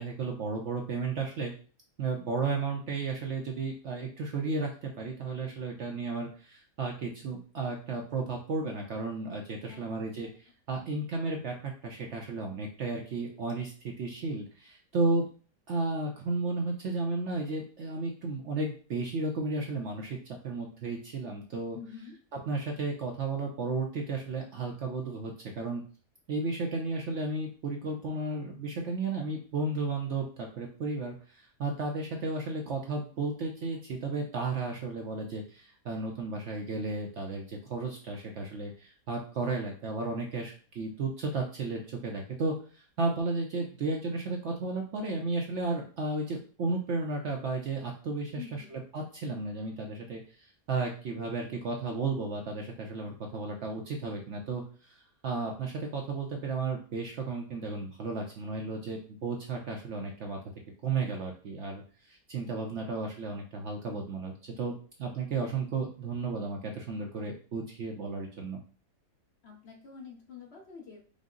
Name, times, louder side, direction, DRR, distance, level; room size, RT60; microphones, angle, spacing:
voice 1, 0.0-1.5 2.0-15.3 15.7-21.8 22.3-25.8 26.3-60.4 60.8-64.7 65.0-68.6, right 3 dB, 60° right, 1 dB, 0.8 m, -33 dB
voice 2, 9.7-10.3 21.7-22.1 48.4-48.7 69.4-71.0, left 7 dB, 50° left, 0 dB, 0.8 m, -47 dB
5.3 x 2.0 x 3.7 m, 0.39 s
omnidirectional pair, 1.7 m